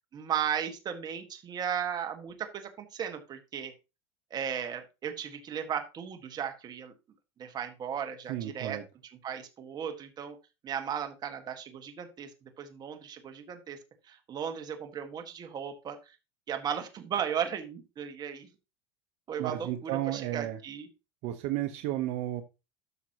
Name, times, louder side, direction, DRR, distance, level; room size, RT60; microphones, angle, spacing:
voice 1, 0.1-3.7 4.3-6.9 7.4-8.8 9.2-10.4 10.6-12.3 12.6-13.8 14.1-16.0 16.5-18.5 19.3-20.9, right 8 dB, 30° right, 6 dB, 1.6 m, -36 dB
voice 2, 8.3-8.8 19.4-20.6 21.2-22.4, right 14 dB, 55° right, 8 dB, 0.9 m, -32 dB
12.5 x 6.1 x 2.9 m, 0.27 s
supercardioid pair, 140°, 14 cm